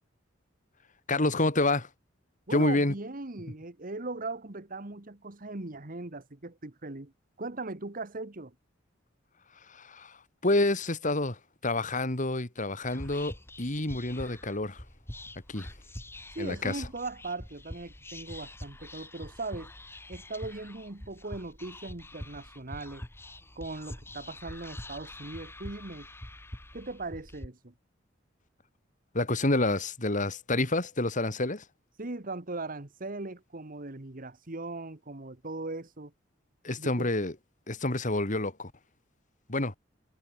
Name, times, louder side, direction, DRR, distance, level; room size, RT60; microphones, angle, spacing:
voice 1, 1.1-1.9 2.5-2.9 9.7-10.2 10.4-14.8 15.5-15.7 16.4-16.8 29.1-31.6 36.6-37.3 37.7-38.7 39.5-39.8, left 2 dB, 40° left, 3.0 m, -28 dB
voice 2, 2.5-7.1 7.4-8.5 16.3-19.7 20.1-23.1 23.5-26.1 26.7-27.7 32.0-36.1 36.8-37.1, right 2 dB, 45° right, 1.6 m, -39 dB
Whispering, 12.8-27.5, left 1 dB, 15° left, 2.3 m, -45 dB
head